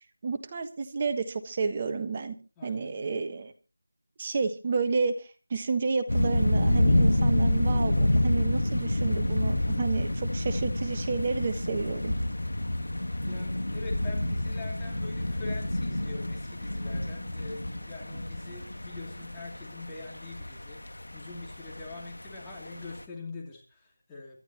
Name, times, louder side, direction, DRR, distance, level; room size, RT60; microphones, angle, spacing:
voice 1, 0.2-2.3 2.6-3.5 4.2-12.1, right 4 dB, 25° right, 8 dB, 1.4 m, -31 dB
voice 2, 2.6-3.0 13.2-24.4, left 3 dB, 5° left, -4 dB, 2.9 m, -44 dB
sound 1, 6.1-23.0, left 1 dB, 80° left, 2.3 m, -28 dB
25.5 x 12.5 x 3.0 m, 0.33 s
figure-of-eight pair, 170°, 0 cm